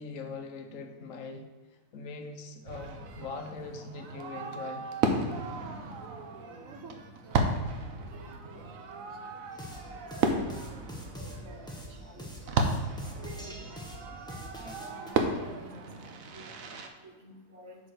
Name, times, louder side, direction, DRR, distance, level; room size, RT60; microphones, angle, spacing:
voice 1, 0.0-1.4 1.9-4.9, left 4 dB, 75° left, 6 dB, 1.1 m, -41 dB
Fireworks, 2.6-16.9, right 3 dB, 80° right, 1.2 m, -34 dB
voice 2, 7.2-17.9, right 2 dB, 55° right, 4 dB, 1.1 m, -54 dB
sound 1, 9.5-15.1, equal, 5° left, 0.9 m, -44 dB
6.2 x 4.7 x 6.2 m, 1.3 s
omnidirectional pair, 1.4 m